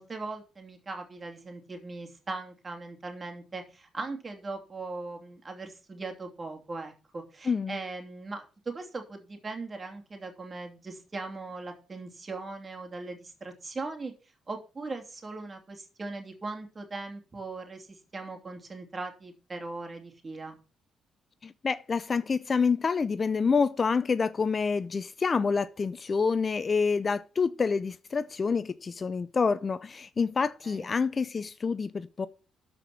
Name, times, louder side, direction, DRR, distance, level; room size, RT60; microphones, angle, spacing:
voice 1, 0.0-14.1 14.5-20.6 30.6-30.9, right 3 dB, 30° right, 2.8 m, -39 dB
voice 2, 7.5-7.8 21.4-32.3, left 5 dB, 35° left, 0.5 m, -27 dB
13.0 x 5.0 x 5.9 m
cardioid pair, 90°, 0 cm